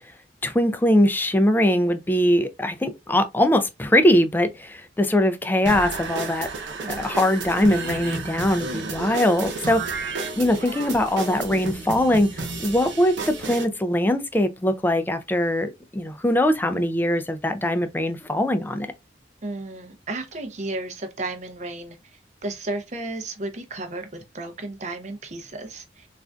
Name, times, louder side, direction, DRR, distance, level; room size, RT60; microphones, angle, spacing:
voice 1, 0.4-6.5 6.9-18.9, left 1 dB, 10° left, 0.3 m, -22 dB
sound 1, 5.7-13.7, right 3 dB, 85° right, 0.8 m, -32 dB
voice 2, 6.8-7.2 19.4-26.1, right 2 dB, 40° right, 0.6 m, -33 dB
3.6 x 2.4 x 2.2 m
head